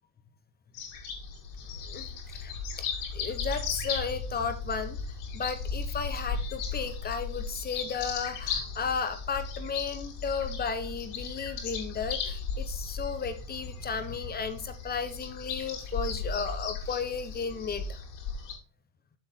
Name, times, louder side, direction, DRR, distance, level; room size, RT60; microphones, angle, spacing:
sound 1, 0.7-18.5, left 5 dB, 70° left, 3.6 m, -36 dB
voice 1, 1.7-2.5 2.8-5.0 5.3-18.0, left 5 dB, 20° left, 11 dB, 0.8 m, -34 dB
7.6 x 7.0 x 4.3 m, 0.37 s
cardioid pair, 150°, 49 cm